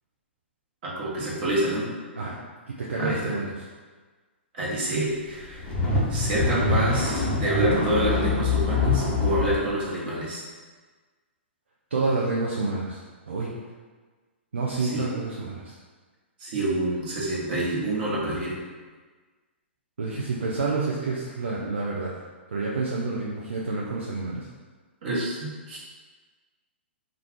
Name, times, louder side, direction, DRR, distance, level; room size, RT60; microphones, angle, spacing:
voice 1, 0.8-1.9 3.0-3.4 4.5-5.6 6.1-10.4 14.8-15.0 16.4-18.6 25.0-25.8, right 1 dB, 50° right, -6 dB, 1.1 m, -27 dB
voice 2, 2.8-3.5 11.9-13.0 13.3-13.5 14.5-15.7 20.0-22.1 22.5-24.5, right 3 dB, 80° right, -4 dB, 0.4 m, -28 dB
sound 1, 5.4-9.6, left 3 dB, 20° left, 1.1 m, -24 dB
2.3 x 2.3 x 3.5 m, 1.4 s
figure-of-eight pair, 115°, 6 cm